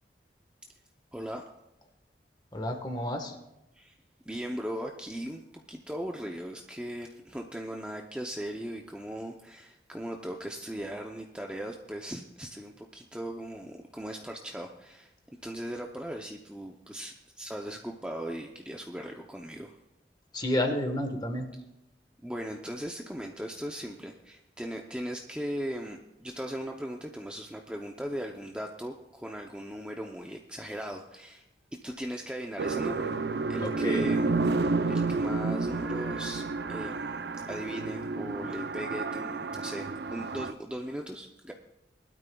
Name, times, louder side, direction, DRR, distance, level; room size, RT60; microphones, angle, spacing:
voice 1, 1.1-1.5 3.7-3.9 4.3-5.4 5.7-15.1 15.4-19.8 22.2-31.5 31.8-33.1 33.5-37.2 37.5-41.5, equal, 5° right, 2 dB, 0.6 m, -38 dB
voice 2, 2.5-3.3 20.3-21.5 33.6-34.1, left 1 dB, 25° left, 5 dB, 1.3 m, -30 dB
sound 1, 32.6-40.5, right 3 dB, 65° right, 0.5 m, -30 dB
21.0 x 12.5 x 2.3 m, 0.91 s
head